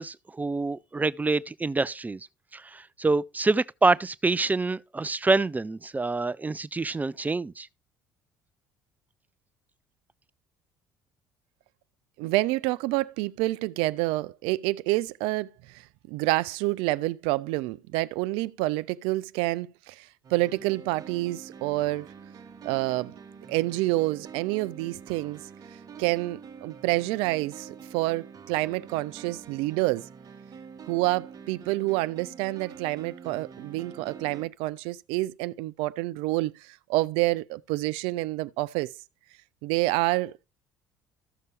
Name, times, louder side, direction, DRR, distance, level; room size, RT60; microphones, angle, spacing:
voice 1, 0.0-2.2 2.5-7.7, right 3 dB, 15° right, 0.5 m, -26 dB
voice 2, 12.2-15.8 16.1-22.1 22.6-23.2 23.5-25.4 26.0-30.1 30.9-38.9 39.6-40.4, right 19 dB, 65° right, 0.4 m, -28 dB
sound 1, 20.2-34.5, right 6 dB, 40° right, 1.1 m, -46 dB
14.0 x 6.6 x 3.3 m
hypercardioid pair, 55°, 10 cm